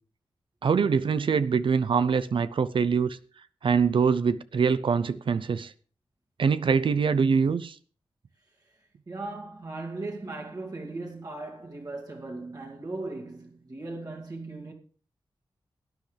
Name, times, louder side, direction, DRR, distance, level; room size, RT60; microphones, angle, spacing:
voice 1, 0.6-3.2 3.6-5.7 6.4-7.8, right 6 dB, 70° right, 0.6 m, -24 dB
voice 2, 8.6-14.7, right 2 dB, 45° right, 2.3 m, -38 dB
17.5 x 10.5 x 3.4 m
wide cardioid pair, 140°, 9 cm